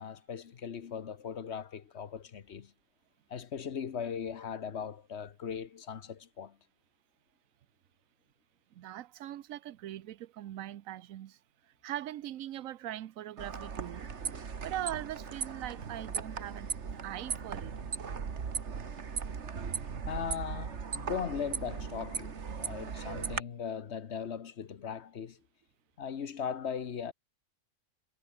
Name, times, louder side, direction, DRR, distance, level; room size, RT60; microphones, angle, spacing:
voice 1, 0.0-2.7 3.3-6.6 20.1-25.4 26.0-27.1, left 7 dB, 50° left, 1.2 m, -39 dB
voice 2, 8.7-11.4 11.6-14.1 14.6-16.7 17.0-17.7, right 12 dB, 65° right, 1.0 m, -41 dB
sound 1, 13.4-23.4, right 6 dB, 50° right, 1.7 m, -38 dB
omnidirectional pair, 1.6 m